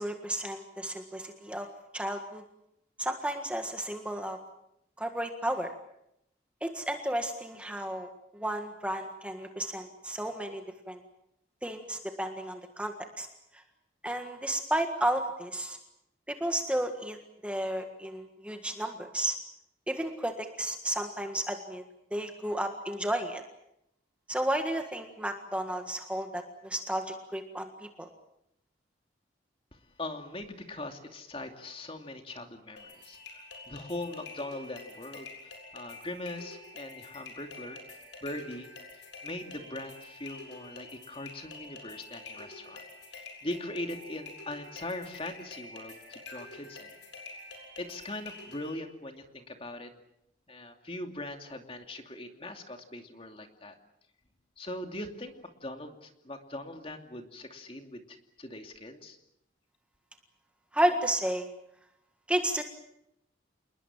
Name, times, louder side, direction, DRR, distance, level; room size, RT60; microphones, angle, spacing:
voice 1, 0.0-1.7 1.9-2.4 3.0-4.4 5.0-5.7 6.6-11.0 11.6-13.3 14.0-15.8 16.3-19.3 19.9-21.8 22.1-23.4 24.3-27.7 28.0-28.1 60.7-61.5 62.3-62.6, right 1 dB, 5° right, 5 dB, 1.7 m, -32 dB
voice 2, 29.7-37.8 38.2-42.8 43.1-46.9 47.8-49.9 50.5-53.8 54.6-59.2, left 1 dB, 30° left, 5 dB, 2.7 m, -41 dB
sound 1, 32.8-48.8, left 3 dB, 80° left, 7.6 m, -47 dB
28.5 x 21.0 x 7.4 m, 0.79 s
head